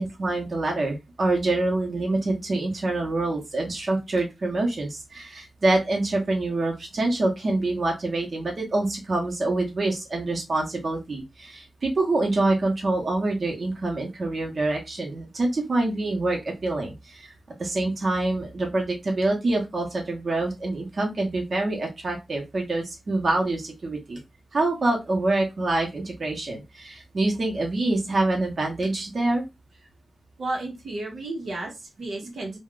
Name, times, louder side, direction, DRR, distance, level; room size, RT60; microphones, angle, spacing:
voice 1, 0.0-17.3 17.6-24.2 24.5-29.4 32.3-32.4, right 2 dB, 50° right, 0 dB, 0.8 m, -26 dB
voice 2, 30.4-32.6, right 2 dB, 75° right, 0 dB, 0.9 m, -32 dB
2.4 x 2.2 x 3.6 m, 0.23 s
wide cardioid pair, 130°, 0 cm